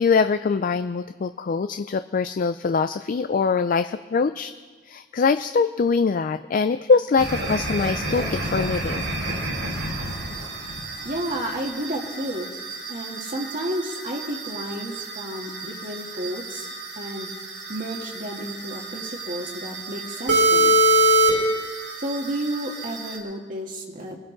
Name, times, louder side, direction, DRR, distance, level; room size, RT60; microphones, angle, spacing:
voice 1, 0.0-4.5 4.9-9.1, left 5 dB, 45° left, 11 dB, 0.4 m, -23 dB
sound 1, 7.2-23.2, right 2 dB, 80° right, 4.6 m, -26 dB
voice 2, 11.0-12.5 12.9-16.7 16.9-17.3 17.7-20.8 22.0-24.2, right 1 dB, 50° right, -1 dB, 1.7 m, -31 dB
23.0 x 13.0 x 3.9 m, 1.5 s
head